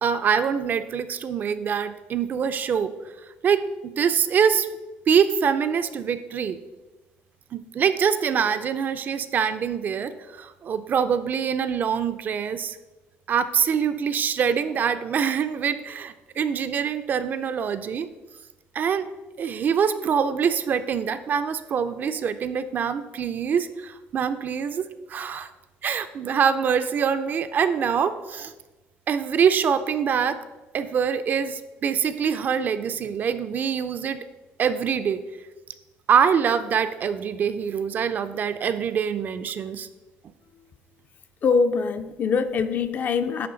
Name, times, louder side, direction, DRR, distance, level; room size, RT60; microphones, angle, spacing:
voice 1, 0.0-2.9 3.4-4.7 5.1-6.6 7.5-12.8 13.3-18.1 18.7-19.1 19.4-25.5 25.8-28.5 29.1-30.4 30.7-34.2 34.6-35.2 36.1-39.9, right 7 dB, 45° right, 11 dB, 0.4 m, -24 dB
voice 2, 41.4-43.5, left 5 dB, 40° left, 10 dB, 0.4 m, -23 dB
10.0 x 3.9 x 3.9 m, 1.1 s
cardioid pair, 130°, 4 cm